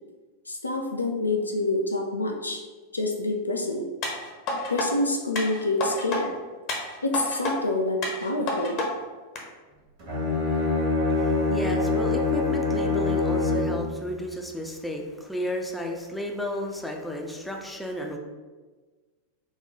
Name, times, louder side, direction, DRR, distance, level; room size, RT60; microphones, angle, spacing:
voice 1, 0.5-2.6 2.9-3.8 4.7-6.3 7.0-8.8 17.0-17.1, left 2 dB, 80° left, 2 dB, 0.4 m, -27 dB
sound 1, 4.0-4.9 5.4-6.2 6.7-7.5 8.0-8.9 9.4-9.5, left 2 dB, 40° left, 0.7 m, -29 dB
Bowed string instrument, 10.0-13.9, left 3 dB, 45° right, 1.4 m, -24 dB
voice 2, 11.2-18.2, equal, 5° left, 1 dB, 0.5 m, -33 dB
4.2 x 2.3 x 3.5 m, 1.3 s
figure-of-eight pair, 90°, 0 cm